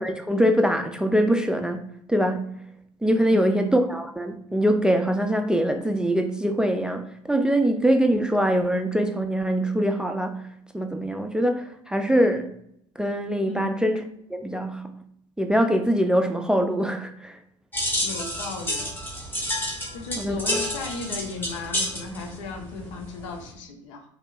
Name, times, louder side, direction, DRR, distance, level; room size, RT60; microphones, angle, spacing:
voice 1, 0.0-2.6 3.0-10.5 10.7-12.5 13.0-14.0 14.3-14.9 15.4-17.4 20.2-20.4, equal, 5° right, 0.4 m, -23 dB
voice 2, 3.3-3.7 13.5-13.8 18.0-18.9 19.9-24.0, left 4 dB, 75° left, 0.7 m, -35 dB
sound 1, 17.7-23.5, equal, 15° left, 1.1 m, -30 dB
4.4 x 2.7 x 2.4 m
hypercardioid pair, 60°, 16 cm